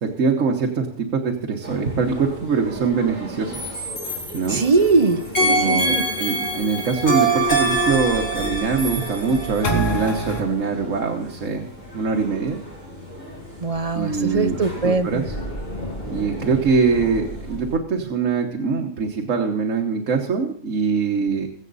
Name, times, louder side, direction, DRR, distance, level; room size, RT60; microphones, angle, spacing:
voice 1, 0.0-3.7 4.0-4.6 5.4-11.7 11.9-12.6 13.9-14.6 14.8-15.2 16.1-21.5, right 5 dB, 75° right, 2 dB, 1.6 m, -23 dB
sound 1, 1.6-17.6, equal, 10° right, 5.6 m, -39 dB
sound 2, 1.9-17.8, equal, 35° left, 1.9 m, -38 dB
sound 3, 3.5-4.9 5.4-10.4, right 2 dB, 70° left, 3.1 m, -24 dB
voice 2, 4.5-6.0 13.6-15.3, right 4 dB, 35° right, 8 dB, 0.8 m, -21 dB
22.0 x 7.5 x 4.1 m, 0.65 s
omnidirectional pair, 1.3 m